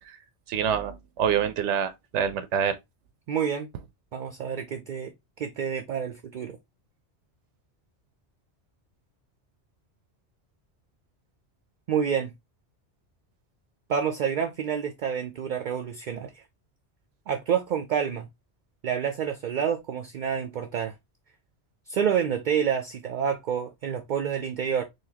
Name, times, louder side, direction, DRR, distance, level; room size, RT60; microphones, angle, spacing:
voice 1, 0.5-2.8, right 8 dB, 90° right, 0.9 m, -26 dB
voice 2, 3.3-3.7 4.1-5.1 5.4-6.6 11.9-12.3 13.9-16.4 17.3-18.3 18.8-20.9 21.9-24.8, right 8 dB, 55° right, 0.5 m, -28 dB
4.1 x 2.7 x 2.8 m
omnidirectional pair, 1.2 m